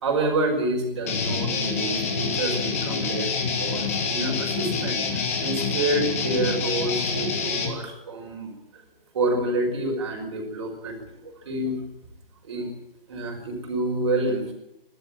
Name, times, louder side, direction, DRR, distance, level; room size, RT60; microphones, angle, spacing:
voice 1, 0.0-8.5 9.1-11.0 11.2-11.8 12.4-12.7 13.1-14.4, right 2 dB, 30° right, 2 dB, 5.6 m, -28 dB
Guitar, 1.0-7.8, left 5 dB, 15° left, 1.6 m, -27 dB
27.0 x 12.5 x 9.0 m, 0.82 s
hypercardioid pair, 175°, 29 cm